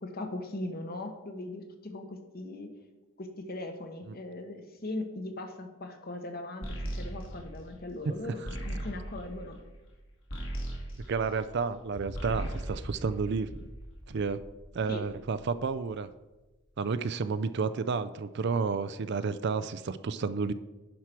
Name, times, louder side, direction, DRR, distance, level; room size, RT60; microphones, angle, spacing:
voice 1, 0.0-2.7 3.2-9.6 14.9-15.0, left 2 dB, 45° left, 6 dB, 1.1 m, -39 dB
sound 1, 6.6-11.8 12.1-13.8, right 1 dB, 60° left, 2.3 m, -38 dB
voice 2, 11.1-13.7 14.1-14.4 14.7-16.1 16.8-20.5, right 5 dB, 50° right, 13 dB, 0.4 m, -31 dB
sound 2, 11.9-16.0, equal, 5° left, 1.0 m, -46 dB
10.5 x 4.7 x 5.9 m, 1.1 s
head